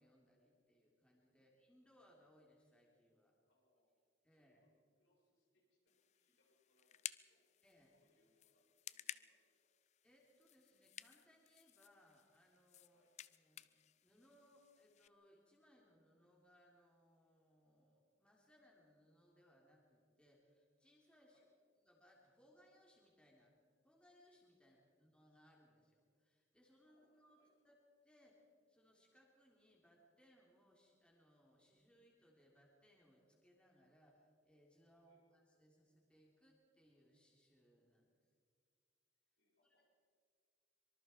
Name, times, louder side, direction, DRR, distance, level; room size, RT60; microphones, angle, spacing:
voice 1, 0.0-3.3 4.2-4.6 7.6-7.9 10.0-13.0 13.3-13.7 14.0-21.4 21.8-23.5 23.8-27.4 27.6-27.7 28.0-38.1 39.6-39.9, equal, 5° left, -3 dB, 3.5 m, -70 dB
voice 2, 3.4-3.9 4.3-7.5 7.9-9.7 12.9-13.2 21.2-21.5 24.6-24.8 26.8-27.5 35.0-35.2 39.4-39.9, left 1 dB, 80° left, -2 dB, 7.0 m, -82 dB
sound 1, 5.9-15.1, left 11 dB, 35° left, 0.4 m, -55 dB
25.0 x 24.5 x 4.6 m, 2.1 s
head